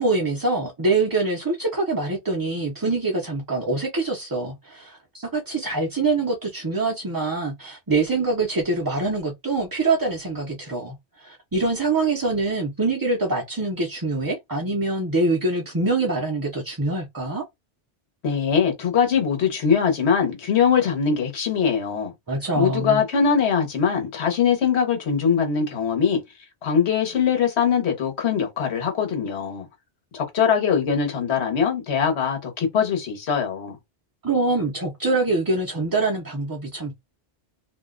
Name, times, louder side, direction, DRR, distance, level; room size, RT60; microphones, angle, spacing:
voice 1, 0.0-17.4 22.3-23.0 34.2-36.9, right 3 dB, 25° right, 0.5 m, -24 dB
voice 2, 18.2-22.1 22.6-26.2 26.6-29.7 30.1-33.8, left 7 dB, 85° left, 1.3 m, -22 dB
2.6 x 2.1 x 3.6 m
omnidirectional pair, 1.1 m